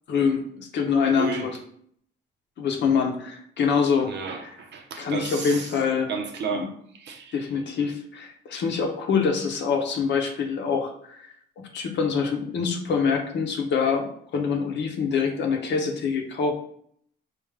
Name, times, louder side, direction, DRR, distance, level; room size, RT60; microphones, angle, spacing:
voice 1, 0.1-1.6 2.6-4.1 5.0-6.1 6.5-6.7 7.3-11.3 11.7-16.5, left 5 dB, 65° left, 3 dB, 0.8 m, -25 dB
voice 2, 1.2-1.5 4.1-5.7 6.1-7.3, right 5 dB, 60° right, 4 dB, 0.7 m, -33 dB
3.6 x 2.5 x 3.3 m, 0.64 s
cardioid pair, 90°, 20 cm